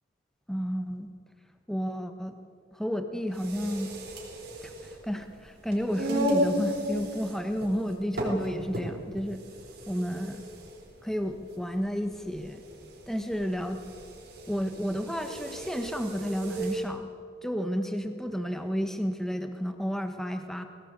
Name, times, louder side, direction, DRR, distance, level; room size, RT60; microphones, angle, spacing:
voice 1, 0.5-1.1 1.7-2.3 2.7-3.9 4.6-9.4 9.9-10.4 11.0-12.6 13.1-13.8 14.5-17.1 17.4-20.6, equal, ahead, 6 dB, 1.3 m, -31 dB
sound 1, 3.3-16.8, equal, 50° right, 4.4 m, -35 dB
20.5 x 18.0 x 8.2 m, 2.3 s
head